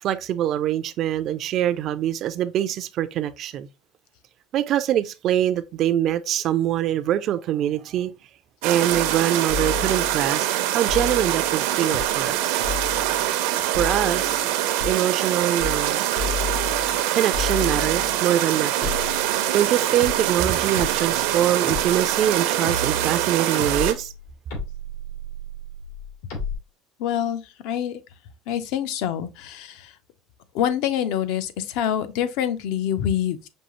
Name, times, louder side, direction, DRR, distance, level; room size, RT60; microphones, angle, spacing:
voice 1, 0.0-3.7 4.5-8.1 8.6-12.6 13.6-14.4 14.9-16.0 17.1-19.0 19.5-24.1, right 11 dB, 40° right, 0.3 m, -24 dB
sound 1, 8.6-23.9, right 12 dB, 75° right, 0.6 m, -24 dB
sound 2, 8.9-9.2 9.5-10.3 10.9-11.5 11.9-12.3 12.6-13.3 13.7-14.4 14.8-15.0 15.6-15.9 16.2-17.0 17.3-18.2 18.8-19.6 20.0-26.6, left 4 dB, 90° left, 2.5 m, -33 dB
voice 2, 27.0-27.9 28.5-29.7 30.5-33.5, left 10 dB, 65° left, 0.5 m, -26 dB
5.4 x 2.7 x 2.9 m
cardioid pair, 160°, 0 cm